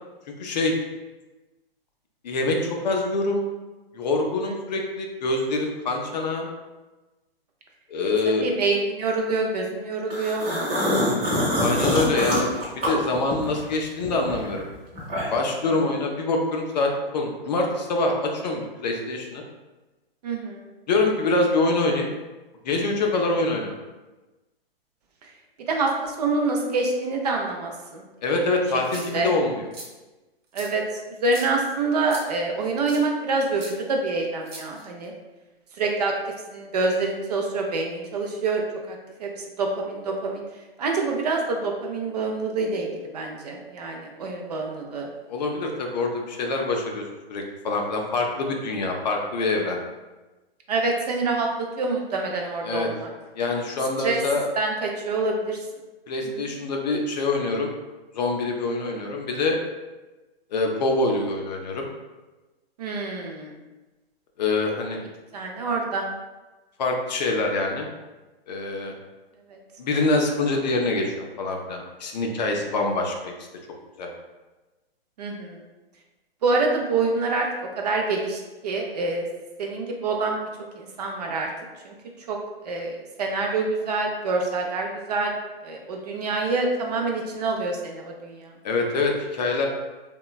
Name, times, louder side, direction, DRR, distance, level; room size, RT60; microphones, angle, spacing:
voice 1, 0.4-0.7 2.2-3.5 3.9-6.5 7.9-8.5 11.6-12.5 12.8-14.7 15.3-19.4 20.9-22.1 22.6-23.7 28.2-29.7 45.3-47.0 47.3-49.8 52.6-52.9 53.3-54.5 56.1-57.7 58.1-59.6 60.5-61.9 64.4-65.0 66.8-67.9 68.5-68.9 69.8-73.3 74.0-74.1 88.6-89.7, left 2 dB, 45° left, 1 dB, 0.4 m, -25 dB
voice 2, 8.2-10.4 12.1-12.4 15.7-15.8 20.2-20.7 25.7-28.0 29.0-29.3 30.5-35.1 35.8-36.1 36.5-39.3 39.6-40.4 40.8-45.1 50.7-53.1 54.0-54.2 54.6-55.6 62.8-63.5 65.3-66.1 69.5-69.6 75.2-75.6 76.4-77.5 77.8-79.3 79.6-80.4 80.8-81.5 81.8-81.9 82.3-82.4 82.6-85.3 85.6-88.5, right 3 dB, 45° right, 1 dB, 0.4 m, -26 dB
sound 1, 10.1-13.7 14.0-15.5, equal, 20° right, 0.7 m, -25 dB
sound 2, 28.8-29.3 29.7-29.9 30.5-30.7 31.2-31.5 32.1-32.2 32.9-33.0 33.6-33.7 34.4-35.0, right 3 dB, 70° right, 0.8 m, -40 dB
2.9 x 2.2 x 2.2 m, 1.1 s
hypercardioid pair, 125°, 30 cm